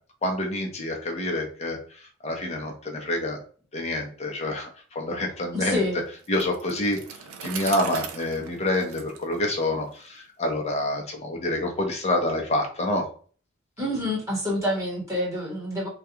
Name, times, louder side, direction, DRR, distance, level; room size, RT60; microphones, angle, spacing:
voice 1, 0.2-1.8 2.2-3.4 3.7-5.8 6.3-7.0 7.4-13.0, left 1 dB, 30° left, 1 dB, 0.6 m, -27 dB
voice 2, 5.5-6.0 13.8-15.9, left 1 dB, 15° right, -5 dB, 1.0 m, -27 dB
Bicycle, 6.2-10.1, right 7 dB, 90° right, 0.4 m, -39 dB
2.3 x 2.2 x 2.8 m, 0.43 s
head